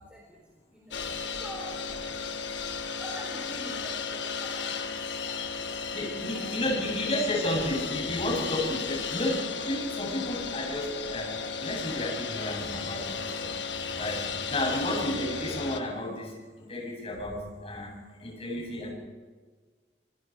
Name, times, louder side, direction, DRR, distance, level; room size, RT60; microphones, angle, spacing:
voice 1, 0.7-1.1 1.4-1.7 3.0-4.8 5.2-5.6 6.3-6.4, equal, 5° right, -3 dB, 4.0 m, -44 dB
sound 1, 0.9-15.8, left 5 dB, 90° left, 1.6 m, -34 dB
voice 2, 5.9-11.3 11.6-13.5 14.0-14.2 14.5-16.4 16.7-17.9 18.2-18.9, left 1 dB, 35° left, -2 dB, 7.8 m, -32 dB
26.5 x 21.5 x 4.7 m, 1.5 s
head